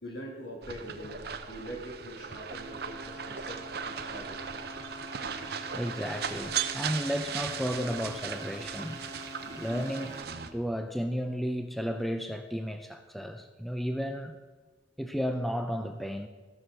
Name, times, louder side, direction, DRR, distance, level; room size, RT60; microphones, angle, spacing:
voice 1, 0.0-4.5, equal, 75° left, 1 dB, 2.6 m, -43 dB
sound 1, 0.6-10.5, right 7 dB, 55° right, 0.7 m, -37 dB
sound 2, 2.5-10.2, equal, 15° right, 1.4 m, -46 dB
voice 2, 5.7-9.1 9.5-10.1 10.5-14.4 15.0-16.3, equal, ahead, 7 dB, 0.4 m, -33 dB
14.5 x 6.3 x 6.3 m, 1.3 s
head